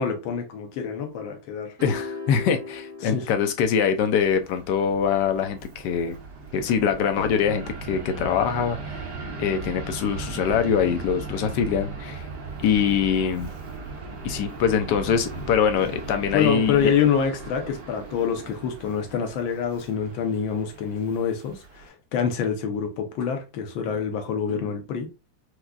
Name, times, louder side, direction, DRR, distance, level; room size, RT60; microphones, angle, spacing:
voice 1, 0.0-1.8 3.0-3.3 16.3-25.1, left 7 dB, 90° left, 1.5 m, -26 dB
voice 2, 1.8-6.2 6.5-9.0 9.4-12.2 12.6-13.5 14.2-16.9, left 7 dB, 70° left, 1.1 m, -23 dB
sound 1, 1.8-4.2, left 3 dB, 30° right, 1.2 m, -37 dB
Fixed-wing aircraft airplane, 4.1-21.9, right 3 dB, 65° right, 1.5 m, -38 dB
4.7 x 2.2 x 2.3 m
omnidirectional pair, 2.1 m